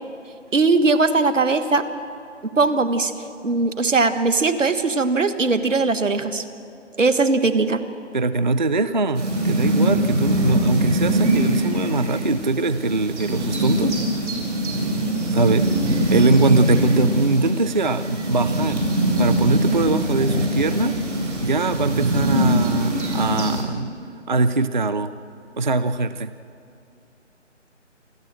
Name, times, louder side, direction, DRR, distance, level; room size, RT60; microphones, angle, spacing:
voice 1, 0.5-1.9 2.6-3.1 3.4-6.4 7.0-7.8, right 3 dB, 90° right, 11 dB, 1.6 m, -19 dB
voice 2, 8.1-14.0 15.3-15.7 16.1-18.8 19.2-21.0 21.4-23.9 24.3-25.1 25.6-26.3, right 3 dB, 40° right, 13 dB, 0.4 m, -22 dB
sound 1, 9.1-23.6, right 1 dB, 70° right, 5.6 m, -22 dB
28.5 x 13.0 x 7.6 m, 2.7 s
figure-of-eight pair, 165°, 37 cm